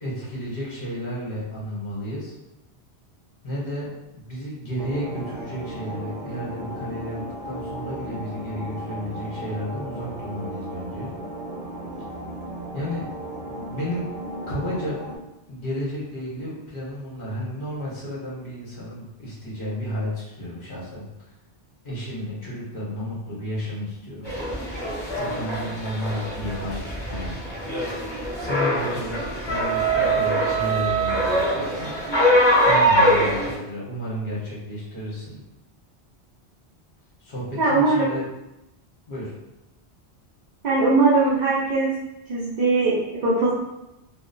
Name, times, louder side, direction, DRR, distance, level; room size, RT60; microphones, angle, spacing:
voice 1, 0.0-2.3 3.4-11.1 12.7-13.1 13.5-14.1 14.5-15.0 15.5-21.0 21.8-24.3 25.1-27.4 28.3-31.9 32.6-35.4 37.2-38.3 39.1-39.3, equal, 55° left, -7 dB, 1.1 m, -32 dB
sound 1, 4.8-15.2, right 1 dB, 85° right, 0.9 m, -35 dB
sound 2, 24.2-33.6, right 1 dB, 25° left, 1.3 m, -23 dB
voice 2, 37.6-38.2 40.6-41.9 42.3-43.5, right 3 dB, 55° right, -6 dB, 0.5 m, -20 dB
2.7 x 2.1 x 2.5 m, 0.93 s
omnidirectional pair, 1.1 m